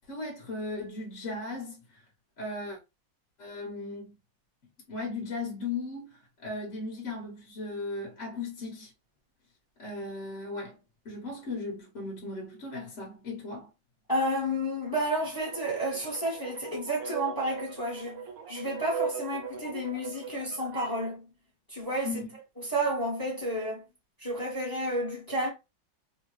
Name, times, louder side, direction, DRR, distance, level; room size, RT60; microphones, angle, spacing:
voice 1, 0.1-1.8 2.4-2.8 3.4-4.1 4.9-6.1 6.4-8.9 9.8-10.8 11.0-13.7 22.0-22.3, left 3 dB, 50° left, 0.9 m, -37 dB
voice 2, 14.1-21.2 21.7-22.2 22.6-23.8 24.2-25.5, right 1 dB, 20° left, 0.6 m, -31 dB
sound 1, 15.4-21.1, right 5 dB, 85° right, 0.7 m, -39 dB
3.1 x 2.1 x 3.0 m
omnidirectional pair, 2.1 m